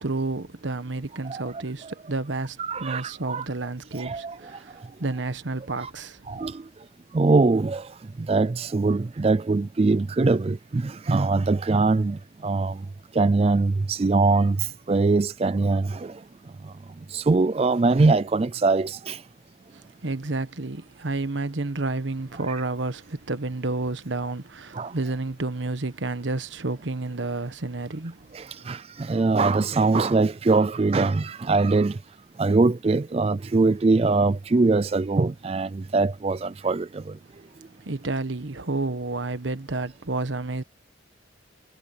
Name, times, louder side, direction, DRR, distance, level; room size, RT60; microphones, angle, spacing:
voice 1, 0.0-6.4 19.7-28.3 28.6-28.7 37.8-40.6, right 3 dB, 75° right, 1.2 m, -30 dB
voice 2, 1.2-1.6 2.6-3.5 3.9-4.4 5.8-5.9 6.3-6.6 7.1-7.9 8.2-12.8 13.1-16.2 16.6-16.7 17.1-19.2 24.7-24.9 28.3-32.0 32.4-37.0, right 3 dB, 30° right, 0.3 m, -22 dB
head